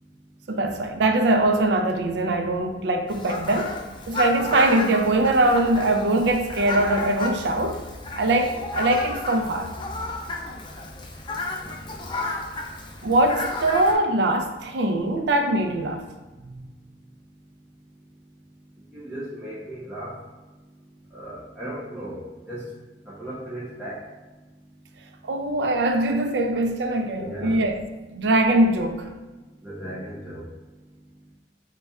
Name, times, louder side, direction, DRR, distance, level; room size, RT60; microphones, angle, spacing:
voice 1, 0.5-3.8 4.1-7.8 8.2-9.7 13.0-16.0 16.4-16.6 25.3-27.8 28.1-29.0, right 2 dB, 75° right, 0.4 m, -22 dB
Fowl, 3.1-13.9, left 3 dB, 25° left, 0.4 m, -33 dB
voice 2, 11.6-12.0 18.9-20.2 21.1-22.6 23.1-24.1 27.1-27.6 29.6-30.5, right 1 dB, 5° right, 0.7 m, -36 dB
3.4 x 2.2 x 4.1 m
head